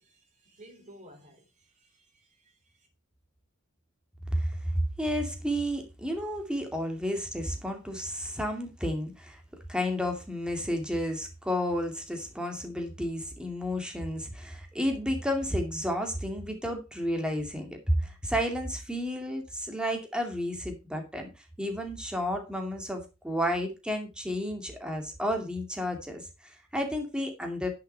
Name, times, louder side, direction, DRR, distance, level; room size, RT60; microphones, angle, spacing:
voice 1, 0.0-2.9, equal, 35° right, 3.5 m, -55 dB
voice 2, 4.3-9.4 9.7-21.3 21.6-27.7, equal, 5° right, 2.4 m, -31 dB
10.5 x 7.2 x 4.5 m
head